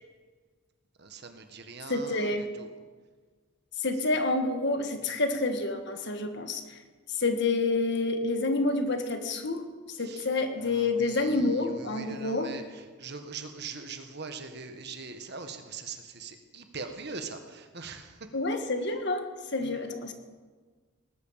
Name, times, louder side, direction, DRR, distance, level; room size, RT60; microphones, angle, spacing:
voice 1, 1.0-2.7 10.0-10.3 10.6-18.2 19.6-19.7, right 4 dB, 50° right, 6 dB, 1.5 m, -42 dB
voice 2, 1.9-2.5 3.8-6.8 7.1-12.6 18.3-20.1, left 2 dB, 55° left, 7 dB, 1.6 m, -28 dB
19.0 x 12.0 x 5.8 m, 1.5 s
head